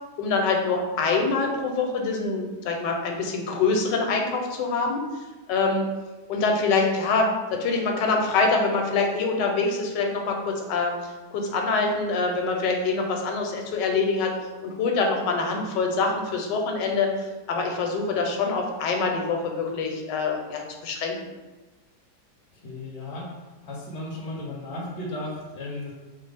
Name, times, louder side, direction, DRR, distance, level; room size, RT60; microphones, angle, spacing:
voice 1, 0.2-5.0 5.5-5.8 6.3-10.9 11.3-14.3 14.6-21.2, left 4 dB, 85° left, 2 dB, 1.2 m, -25 dB
voice 2, 22.5-23.3 23.6-25.9, left 1 dB, 65° left, -2 dB, 0.7 m, -35 dB
4.1 x 2.0 x 3.3 m, 1.2 s
omnidirectional pair, 1.9 m